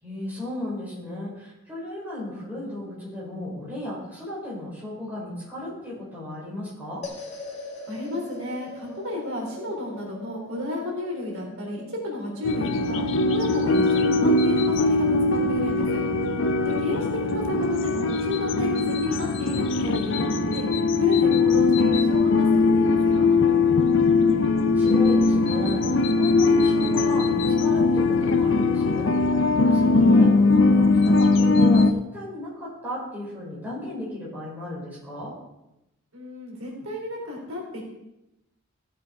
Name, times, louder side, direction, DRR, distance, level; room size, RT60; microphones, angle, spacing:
voice 1, 0.0-7.0 24.7-35.3, left 1 dB, 10° right, -8 dB, 5.5 m, -35 dB
sound 1, 7.0-17.5, left 2 dB, 30° left, 1.8 m, -44 dB
voice 2, 7.9-13.0 13.3-15.9 16.6-20.7 21.0-23.3 36.1-37.8, left 1 dB, 80° right, -2 dB, 3.5 m, -32 dB
sound 2, 12.4-31.9, left 3 dB, 60° left, 0.6 m, -20 dB
15.5 x 7.4 x 4.8 m, 0.91 s
head